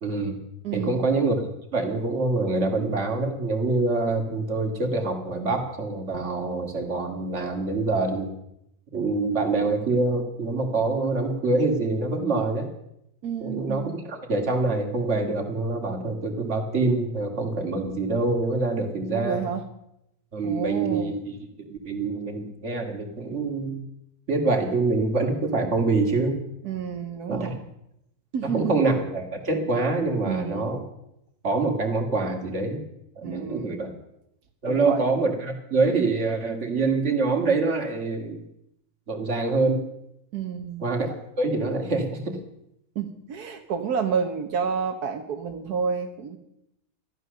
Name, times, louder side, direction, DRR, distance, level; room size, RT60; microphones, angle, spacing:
voice 1, 0.0-0.4 0.7-8.3 8.9-12.7 13.4-19.4 20.3-23.8 24.3-26.4 27.3-27.5 28.4-30.8 31.4-32.8 33.2-33.9 34.6-38.4 39.1-39.8 40.8-41.1 41.4-42.4, right 3 dB, 50° right, 2 dB, 2.6 m, -25 dB
voice 2, 0.6-1.1 13.2-13.9 19.1-19.7 20.4-21.2 26.6-27.6 28.3-28.8 30.3-30.7 33.2-33.8 34.7-35.0 40.3-40.8 43.0-46.4, right 6 dB, 85° right, 5 dB, 1.7 m, -30 dB
14.5 x 12.0 x 6.7 m, 0.80 s
omnidirectional pair, 1.6 m